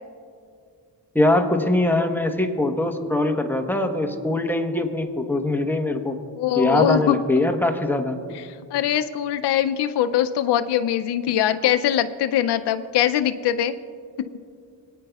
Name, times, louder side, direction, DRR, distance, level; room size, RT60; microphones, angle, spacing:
voice 1, 1.1-6.2 6.6-8.2, left 2 dB, 5° left, 3 dB, 1.0 m, -22 dB
voice 2, 6.4-7.1 8.3-8.4 8.7-13.8, left 11 dB, 70° left, 9 dB, 0.5 m, -22 dB
20.0 x 9.1 x 2.3 m, 2.3 s
cardioid pair, 60°, 43 cm